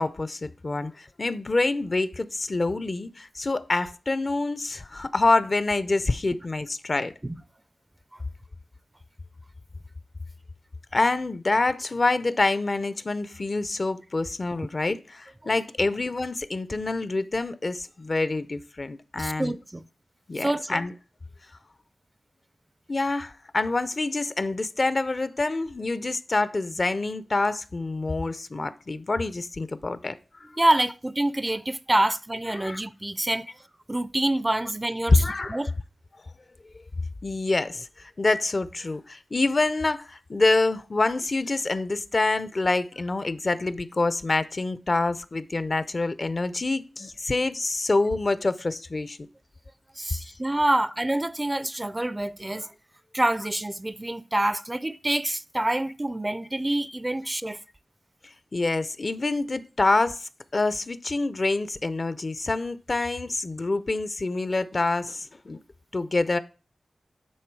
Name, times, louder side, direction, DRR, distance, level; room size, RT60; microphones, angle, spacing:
voice 1, 0.0-7.1 10.9-19.5 20.3-20.9 22.9-30.2 32.6-32.8 35.2-35.6 37.2-49.2 58.5-65.6 65.9-66.4, left 3 dB, 50° left, 0.5 m, -26 dB
voice 2, 19.2-19.8 20.4-20.8 30.6-33.5 33.9-35.2 35.5-35.7 50.0-52.7 53.1-57.6, right 1 dB, 20° right, 0.4 m, -26 dB
9.4 x 3.7 x 4.6 m
cardioid pair, 45°, 0 cm